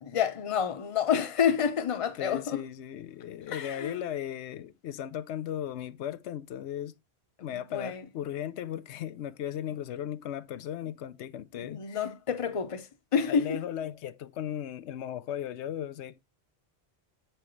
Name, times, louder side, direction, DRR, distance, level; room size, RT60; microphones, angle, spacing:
voice 1, 0.0-2.6 3.5-4.0 7.5-8.0 11.5-13.6, left 7 dB, 35° left, 0.7 m, -29 dB
voice 2, 2.2-6.9 7.4-12.1 13.3-16.2, left 10 dB, 90° left, 0.9 m, -36 dB
7.0 x 4.5 x 3.1 m
omnidirectional pair, 1.1 m